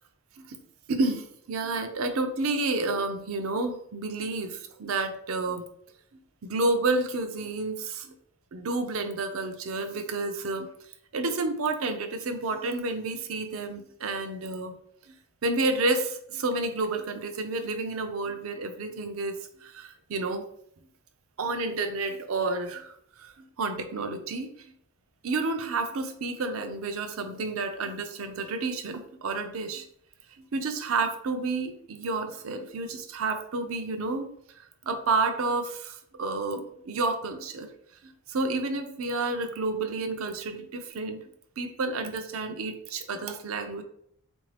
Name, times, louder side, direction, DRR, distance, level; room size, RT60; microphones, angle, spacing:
voice 1, 0.9-5.6 6.4-8.1 8.5-10.7 11.1-14.7 15.1-15.2 15.4-20.5 21.4-24.7 25.2-29.8 30.4-34.3 34.8-37.7 38.0-41.3 41.6-43.8, right 3 dB, 65° right, 8 dB, 0.5 m, -30 dB
3.9 x 2.6 x 3.2 m, 0.69 s
head